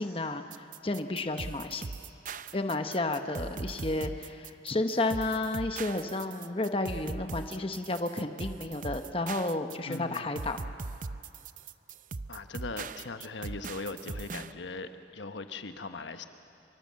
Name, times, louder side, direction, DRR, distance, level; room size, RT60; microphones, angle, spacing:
voice 1, 0.0-1.8 2.5-10.6, left 2 dB, 30° left, 7 dB, 1.0 m, -32 dB
sound 1, 0.5-14.5, right 4 dB, 45° right, 0.6 m, -40 dB
voice 2, 9.8-10.3 12.3-16.3, left 3 dB, 85° left, 8 dB, 1.1 m, -40 dB
25.0 x 24.0 x 7.6 m, 2.6 s
head